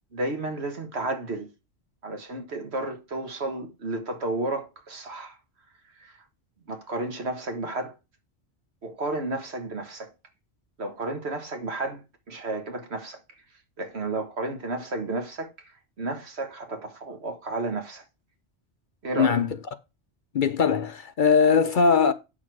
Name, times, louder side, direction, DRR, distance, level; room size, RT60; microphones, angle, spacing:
voice 1, 0.1-1.5 2.0-5.4 6.0-6.1 6.7-7.9 8.8-10.1 10.8-12.0 12.3-13.2 13.8-15.5 16.0-18.0 19.0-19.4, right 2 dB, 70° right, 1.7 m, -32 dB
voice 2, 19.2-19.5 20.3-22.1, left 6 dB, 50° left, 0.7 m, -20 dB
8.4 x 6.4 x 4.7 m
omnidirectional pair, 1.2 m